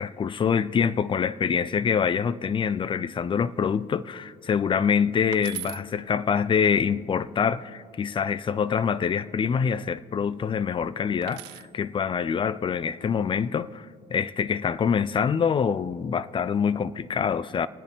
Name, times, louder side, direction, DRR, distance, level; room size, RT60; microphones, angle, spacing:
voice 1, 0.0-17.7, left 7 dB, 30° left, 0.5 m, -25 dB
sound 1, 5.3-5.8 8.1-8.7 11.2-11.7 13.1-13.5, right 16 dB, 80° right, 0.4 m, -40 dB
27.0 x 9.7 x 3.6 m
cardioid pair, 110°, 17 cm